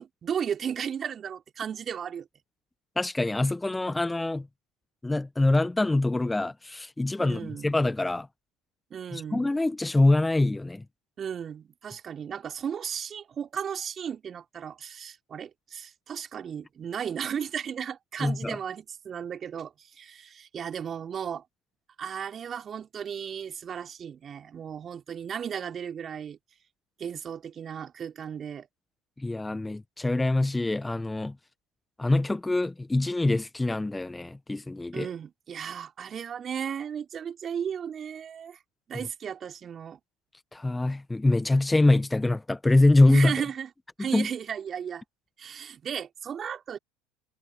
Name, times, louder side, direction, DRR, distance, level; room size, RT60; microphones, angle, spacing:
voice 1, 0.0-2.3 7.2-7.7 8.9-9.5 11.2-21.4 22.0-26.4 27.0-28.7 34.9-38.6 38.9-40.0 43.1-43.7 44.0-45.0 45.4-46.8, right 8 dB, 35° right, 3.2 m, -35 dB
voice 2, 3.0-4.5 5.0-8.3 9.1-10.8 18.2-18.6 29.2-31.3 32.0-35.1 40.5-43.3 44.1-44.3, left 2 dB, 10° left, 1.4 m, -24 dB
figure-of-eight pair, 70°, 0 cm